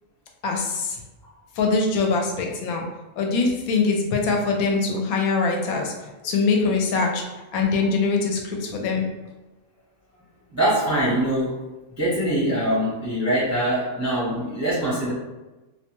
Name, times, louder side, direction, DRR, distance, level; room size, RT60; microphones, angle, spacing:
voice 1, 0.4-1.0 1.6-2.8 3.2-5.9 6.2-7.2 7.5-9.1, left 4 dB, 80° left, 2 dB, 1.0 m, -23 dB
voice 2, 10.5-11.6 12.0-15.1, right 1 dB, 20° right, -8 dB, 0.5 m, -23 dB
2.6 x 2.2 x 2.9 m, 1.1 s
omnidirectional pair, 1.5 m